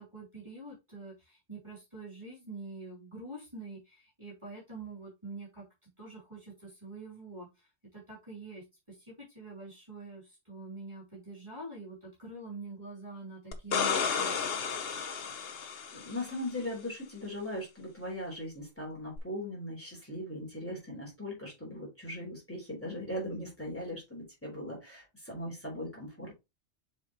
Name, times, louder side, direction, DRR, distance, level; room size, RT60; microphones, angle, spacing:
voice 1, 0.0-14.3, right 3 dB, 20° right, -8 dB, 3.0 m, -46 dB
sound 1, 13.5-16.3 19.2-19.3, left 6 dB, 55° left, 1.0 m, -32 dB
voice 2, 15.9-26.4, left 1 dB, 10° left, -3 dB, 3.6 m, -39 dB
7.0 x 4.6 x 3.0 m, 0.23 s
omnidirectional pair, 1.3 m